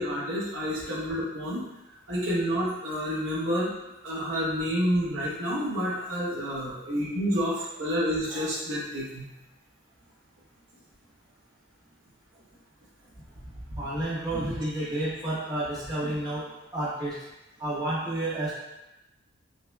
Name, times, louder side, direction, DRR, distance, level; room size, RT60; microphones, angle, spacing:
voice 1, 0.0-1.6 2.1-3.7 4.0-9.3, equal, 70° right, -6 dB, 1.0 m, -29 dB
voice 2, 13.7-16.4 16.7-17.1 17.6-18.5, right 1 dB, 20° right, -9 dB, 0.8 m, -30 dB
5.3 x 2.1 x 2.2 m, 0.96 s
head